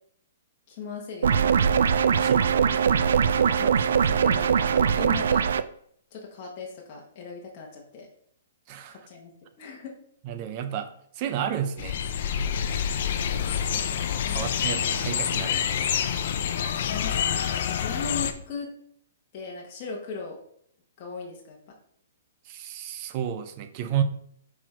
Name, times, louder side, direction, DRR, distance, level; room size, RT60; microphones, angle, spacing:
voice 1, 0.7-1.6 2.6-2.8 3.0-3.3 3.5-5.4 6.1-8.1 8.9-9.9 14.1-14.8 16.8-18.7 19.3-20.4 21.0-21.7, left 5 dB, 35° left, -1 dB, 1.4 m, -39 dB
sound 1, 1.2-5.6, right 7 dB, 75° right, 0.4 m, -21 dB
voice 2, 2.2-2.8 8.7-9.0 10.2-12.0 13.7-14.0 14.3-15.9 22.5-24.0, right 9 dB, 30° right, 9 dB, 0.7 m, -32 dB
sound 2, 11.8-18.3, left 8 dB, 50° left, 0.6 m, -27 dB
6.0 x 4.8 x 4.4 m, 0.66 s
hypercardioid pair, 160°, 0 cm